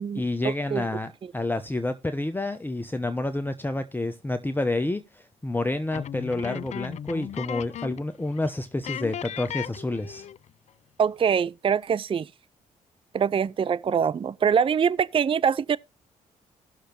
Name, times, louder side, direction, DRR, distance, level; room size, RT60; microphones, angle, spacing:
voice 1, 0.1-10.3, left 2 dB, 15° left, 0.9 m, -29 dB
sound 1, 5.9-8.1 8.4-8.5 8.8-10.5, left 10 dB, 50° left, 0.4 m, -36 dB
voice 2, 11.0-12.3 13.1-15.8, right 7 dB, 35° right, 0.4 m, -23 dB
17.0 x 6.5 x 2.9 m
supercardioid pair, 50°, 15 cm